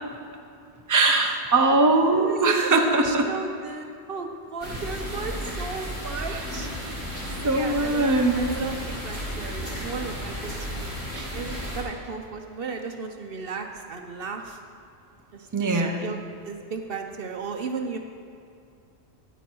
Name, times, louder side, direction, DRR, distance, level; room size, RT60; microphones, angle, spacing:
voice 1, 0.9-3.3 6.3-6.4 7.4-8.4 11.1-11.3 15.5-16.1, right 3 dB, 20° right, 3 dB, 0.8 m, -21 dB
voice 2, 2.0-6.7 7.4-14.6 15.3-16.2 16.4-18.0, right 4 dB, 60° right, 4 dB, 0.9 m, -35 dB
sound 1, 4.6-11.8, equal, 10° left, 2.6 m, -33 dB
12.5 x 9.2 x 4.6 m, 2.5 s
omnidirectional pair, 1.1 m